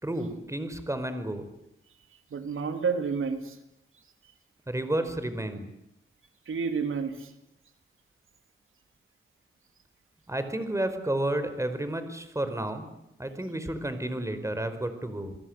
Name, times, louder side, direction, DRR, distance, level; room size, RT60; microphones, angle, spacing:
voice 1, 0.0-1.4 4.7-5.7 10.3-12.9 13.2-15.4, right 1 dB, 15° right, 10 dB, 4.9 m, -31 dB
voice 2, 2.3-3.6 6.5-7.3, right 5 dB, 90° right, 7 dB, 3.0 m, -30 dB
29.0 x 21.5 x 8.1 m, 0.85 s
wide cardioid pair, 80°, 20 cm